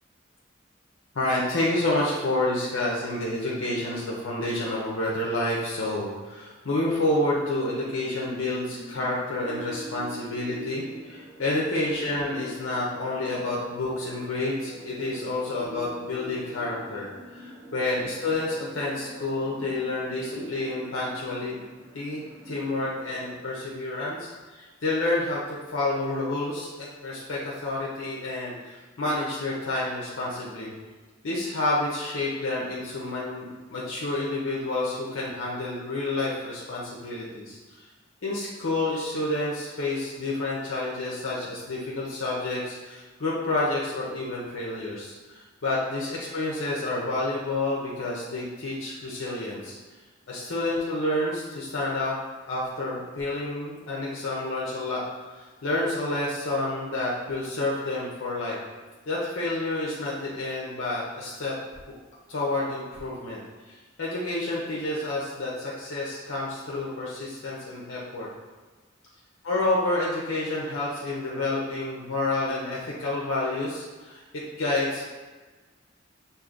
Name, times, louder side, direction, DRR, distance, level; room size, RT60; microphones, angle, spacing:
voice 1, 1.1-21.5 21.9-30.7 31.2-37.9 38.2-49.8 50.3-52.2 52.5-55.0 55.3-58.6 59.1-61.6 62.3-68.3 69.4-75.0, left 2 dB, 75° left, -5 dB, 0.7 m, -29 dB
sound 1, 7.2-23.4, equal, 60° right, 0.8 m, -44 dB
6.6 x 2.6 x 2.5 m, 1.3 s
head